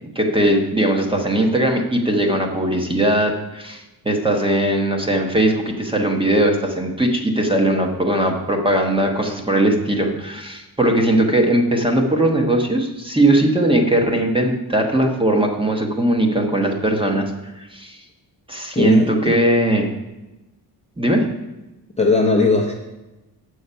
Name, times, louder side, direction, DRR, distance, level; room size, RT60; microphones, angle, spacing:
voice 1, 0.1-17.3 17.6-18.0 18.5-19.9 21.0-21.3, right 1 dB, 15° right, 3 dB, 1.0 m, -19 dB
voice 2, 18.8-19.3 22.0-22.7, left 3 dB, 15° left, 0 dB, 0.7 m, -18 dB
7.9 x 6.6 x 5.5 m, 1.0 s
wide cardioid pair, 165°, 39 cm